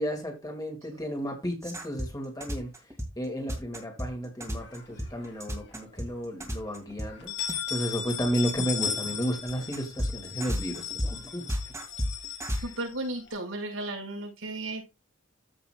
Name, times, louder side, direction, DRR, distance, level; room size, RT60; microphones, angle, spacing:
voice 1, 0.0-2.7 3.2-7.3 7.7-11.7 12.5-12.6, equal, 20° left, 2.5 m, -33 dB
sound 1, 1.6-7.1 7.4-7.5 8.4-12.6, equal, 15° right, 2.3 m, -32 dB
sound 2, 4.6-5.5 5.9-6.0 6.4-6.5 7.1-13.3, left 8 dB, 55° left, 4.1 m, -36 dB
voice 2, 12.6-14.8, right 2 dB, 85° right, 5.5 m, -35 dB
14.5 x 5.9 x 2.4 m
head